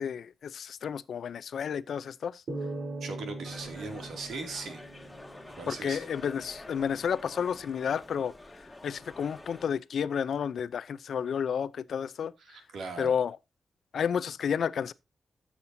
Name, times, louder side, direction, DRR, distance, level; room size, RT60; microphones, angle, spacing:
voice 1, 0.0-2.4 5.7-12.3 13.0-13.4 13.9-14.9, left 7 dB, 75° left, 0.5 m, -31 dB
sound 1, 2.5-5.9, right 2 dB, 65° right, 3.3 m, -40 dB
voice 2, 3.0-4.8 5.6-6.1 12.4-13.1, right 3 dB, 85° right, 2.5 m, -39 dB
sound 2, 3.4-9.7, left 2 dB, 10° left, 2.2 m, -48 dB
13.5 x 7.4 x 2.7 m
cardioid pair, 90°, 0 cm